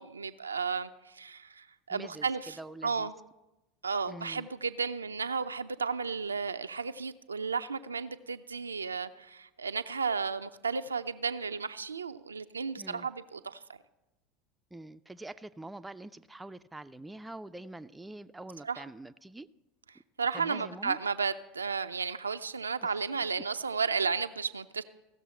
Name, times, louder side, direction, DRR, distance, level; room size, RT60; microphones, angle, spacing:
voice 1, 0.0-2.6 2.8-3.1 3.8-13.6 18.6-18.8 20.2-24.8, right 5 dB, 85° right, 10 dB, 0.3 m, -33 dB
voice 2, 1.9-2.3 2.6-3.1 4.1-4.5 12.8-13.1 14.7-19.5 20.3-21.0 22.8-22.9 23.4-23.5, right 2 dB, 10° right, 11 dB, 0.3 m, -45 dB
16.0 x 6.7 x 4.3 m, 0.97 s
figure-of-eight pair, 75°, 0 cm